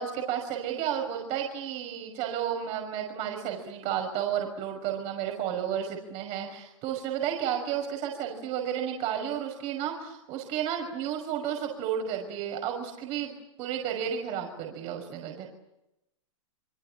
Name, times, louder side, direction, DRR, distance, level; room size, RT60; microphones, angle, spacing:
voice 1, 0.0-15.5, right 9 dB, 40° right, 2 dB, 5.7 m, -32 dB
29.5 x 23.5 x 7.6 m, 0.88 s
hypercardioid pair, 125°, 17 cm